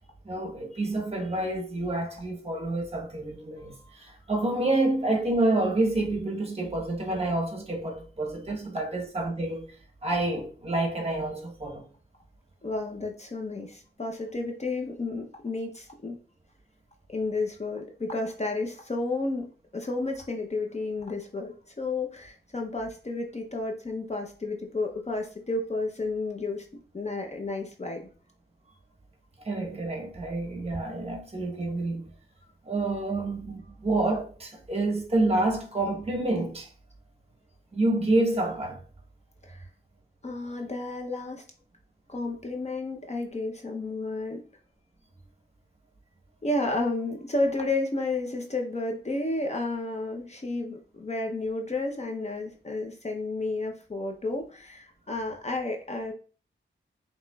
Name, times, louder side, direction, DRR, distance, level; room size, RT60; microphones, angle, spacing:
voice 1, 0.2-9.7 10.0-11.8 29.4-32.1 32.6-36.7 37.7-38.8, right 2 dB, 30° right, 1.1 m, -28 dB
voice 2, 3.6-3.9 12.6-16.2 17.1-19.5 19.7-26.7 26.9-28.1 39.4-39.7 40.2-41.4 42.1-44.4 46.4-56.1, left 2 dB, 35° left, 0.7 m, -32 dB
5.6 x 3.0 x 2.3 m
wide cardioid pair, 80°, 20 cm